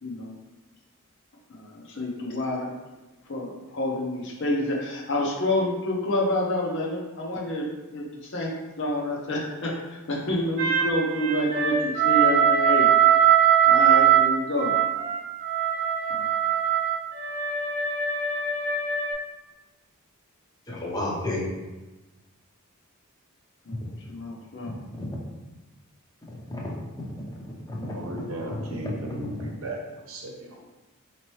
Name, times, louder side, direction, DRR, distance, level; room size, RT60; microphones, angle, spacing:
voice 1, 0.0-0.4 1.5-2.7 3.3-7.7 7.9-12.9 13.7-14.8 16.1-16.3 23.6-24.8, left 1 dB, 55° left, -2 dB, 0.8 m, -28 dB
sound 1, 10.6-19.1, right 9 dB, 40° right, 0.7 m, -21 dB
voice 2, 20.7-21.5 24.9-25.1 26.5-27.1 27.4-28.8 29.2-29.5, left 1 dB, 15° left, -3 dB, 0.7 m, -33 dB
voice 3, 27.9-29.8 30.1-30.5, right 1 dB, 65° right, -1 dB, 0.8 m, -36 dB
4.3 x 2.9 x 3.1 m, 1.1 s
head